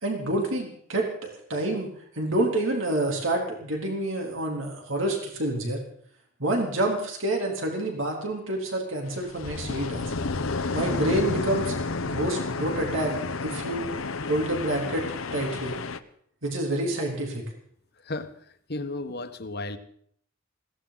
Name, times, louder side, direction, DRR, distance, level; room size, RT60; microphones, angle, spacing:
voice 1, 0.0-5.8 6.4-10.1 10.7-11.7 12.0-13.1 13.4-13.8 14.3-15.1 15.3-15.8 16.4-17.4, right 1 dB, 70° right, 1 dB, 3.6 m, -28 dB
sound 1, 9.1-16.0, left 3 dB, 85° left, 1.0 m, -31 dB
voice 2, 18.7-19.8, left 2 dB, 50° left, 8 dB, 1.4 m, -33 dB
20.5 x 17.0 x 4.1 m, 0.63 s
head